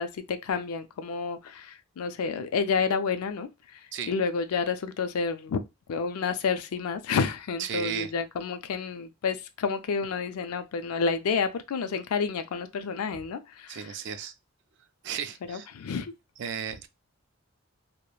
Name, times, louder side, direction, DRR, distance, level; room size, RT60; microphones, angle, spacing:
voice 1, 0.0-3.5 4.1-5.6 5.9-13.9 15.5-16.1, left 5 dB, 85° left, 0.4 m, -29 dB
voice 2, 7.6-8.1 13.7-14.3 15.0-15.7 16.4-16.9, right 7 dB, 50° right, 0.3 m, -34 dB
3.0 x 2.1 x 2.3 m
head